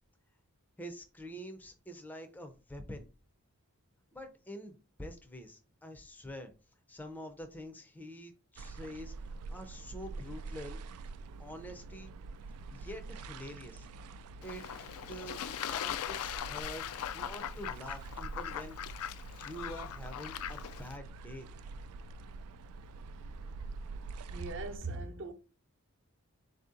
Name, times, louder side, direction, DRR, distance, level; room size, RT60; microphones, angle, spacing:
voice 1, 0.8-3.1 4.1-6.5 6.9-9.1 9.5-10.8 11.4-12.1 12.7-13.9 14.4-14.7 15.1-15.4 15.7-18.8 19.3-21.5, equal, 10° left, 0.5 m, -46 dB
sound 1, 8.6-24.8, right 3 dB, 80° right, 0.3 m, -46 dB
Fowl / Bird / Water, 14.4-21.0, left 10 dB, 80° left, 0.3 m, -40 dB
voice 2, 24.3-25.3, right 3 dB, 55° right, 0.8 m, -39 dB
4.2 x 2.7 x 3.7 m
head